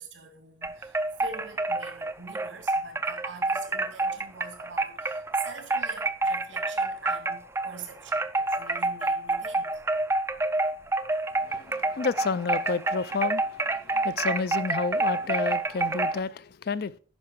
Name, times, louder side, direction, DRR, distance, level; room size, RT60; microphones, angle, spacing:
voice 1, 0.0-9.8 13.8-13.9, right 4 dB, 90° right, 2.3 m, -45 dB
sound 1, 0.6-7.8 8.1-16.2, right 2 dB, 15° right, 0.4 m, -28 dB
voice 2, 11.4-13.4 13.9-17.0, left 4 dB, 55° left, 0.4 m, -30 dB
9.6 x 5.8 x 4.6 m
head